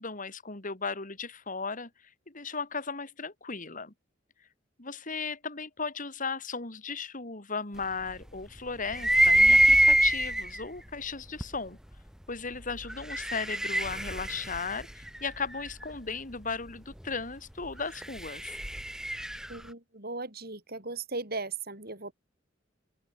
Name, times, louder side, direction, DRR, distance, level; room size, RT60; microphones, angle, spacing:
voice 1, 0.0-3.9 4.8-11.8 12.3-18.6, left 4 dB, 45° left, 2.7 m, -36 dB
sound 1, 8.9-10.6 11.4-11.5 12.8-15.7 17.8-19.5, right 1 dB, 5° right, 1.1 m, -24 dB
voice 2, 19.5-22.1, right 3 dB, 50° right, 7.7 m, -37 dB
open air
head